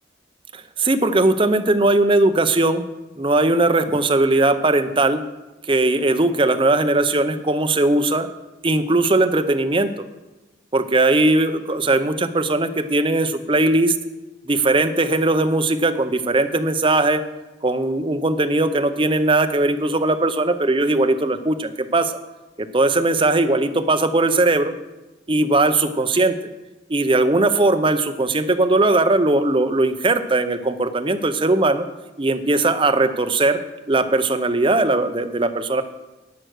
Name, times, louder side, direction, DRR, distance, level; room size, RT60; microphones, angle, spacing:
voice 1, 0.5-2.9 3.2-5.2 5.7-8.3 8.6-9.9 10.7-13.9 14.5-17.2 17.6-22.2 22.6-24.7 25.3-26.4 26.9-31.8 32.2-35.8, right 2 dB, 25° right, 9 dB, 0.6 m, -19 dB
11.5 x 7.8 x 6.3 m, 1.1 s
head